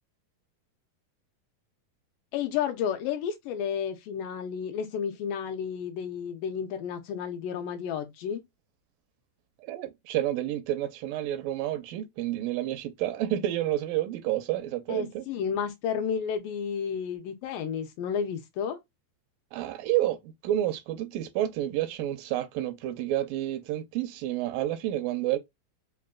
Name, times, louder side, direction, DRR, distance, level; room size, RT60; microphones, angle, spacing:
voice 1, 2.3-8.4 14.9-18.8, left 7 dB, 80° left, 2.4 m, -32 dB
voice 2, 9.6-15.2 19.5-25.4, right 13 dB, 85° right, 2.3 m, -30 dB
5.8 x 2.6 x 2.3 m
omnidirectional pair, 4.0 m